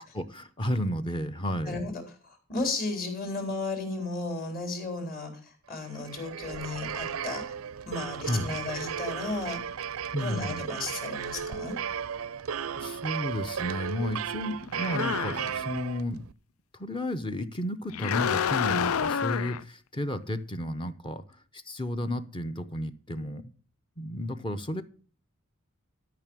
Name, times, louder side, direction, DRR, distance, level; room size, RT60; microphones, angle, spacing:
voice 1, 0.1-1.9 8.2-8.9 10.1-10.6 12.8-16.2 16.8-21.2 21.5-23.4 24.0-24.8, left 1 dB, 25° left, 9 dB, 0.7 m, -32 dB
voice 2, 1.7-7.4 7.9-9.6 10.2-11.7, left 3 dB, 45° left, 4 dB, 3.7 m, -34 dB
sound 1, 5.9-16.3, right 7 dB, 80° right, 0.5 m, -35 dB
sound 2, 14.7-15.8 17.9-19.6, left 7 dB, 80° left, 0.4 m, -29 dB
12.5 x 5.8 x 6.1 m, 0.42 s
head